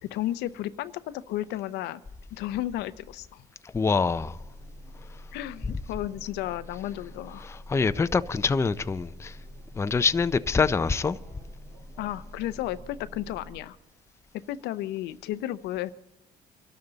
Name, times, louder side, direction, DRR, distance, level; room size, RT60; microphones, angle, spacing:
voice 1, 0.0-2.0 2.3-3.4 5.3-7.4 12.0-13.8 14.5-15.9, left 14 dB, 85° left, 0.6 m, -33 dB
voice 2, 3.7-4.4 7.4-9.4 9.8-11.2, left 4 dB, 15° left, 0.4 m, -25 dB
sound 1, 4.1-13.6, left 1 dB, 70° right, 5.1 m, -46 dB
25.0 x 12.5 x 4.0 m
cardioid pair, 110°, 17 cm